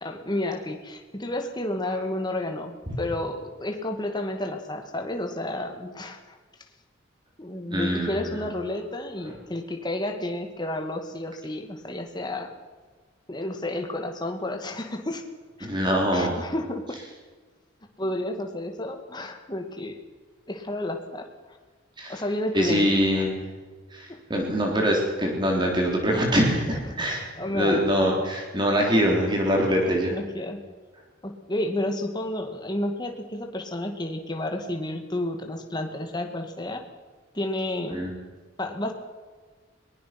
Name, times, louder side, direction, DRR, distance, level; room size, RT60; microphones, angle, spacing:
voice 1, 0.0-6.4 7.4-12.5 13.3-15.2 15.6-15.7 16.1-17.0 18.0-20.0 20.5-21.6 22.1-22.9 24.1-24.2 26.8-27.0 27.4-27.9 30.1-30.6 31.2-36.8 37.3-38.0 38.6-38.9, left 1 dB, 20° left, 4 dB, 2.2 m, -31 dB
voice 2, 7.7-8.4 15.6-16.4 22.0-22.2 22.5-23.3 23.9-30.1 37.9-38.1, equal, 25° right, 0 dB, 3.7 m, -24 dB
22.0 x 20.0 x 6.0 m, 1.4 s
head